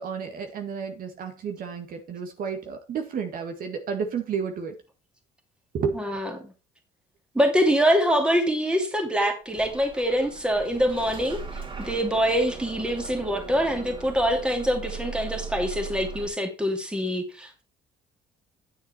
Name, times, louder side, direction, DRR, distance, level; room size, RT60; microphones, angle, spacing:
voice 1, 0.0-4.7 5.7-6.0, right 6 dB, 55° right, 1.8 m, -31 dB
voice 2, 5.9-6.5 7.3-11.4 11.8-17.6, equal, 5° right, 2.6 m, -24 dB
Bus / Engine starting, 9.5-16.3, right 4 dB, 30° right, 2.9 m, -38 dB
9.5 x 7.2 x 4.5 m
cardioid pair, 110°, 17 cm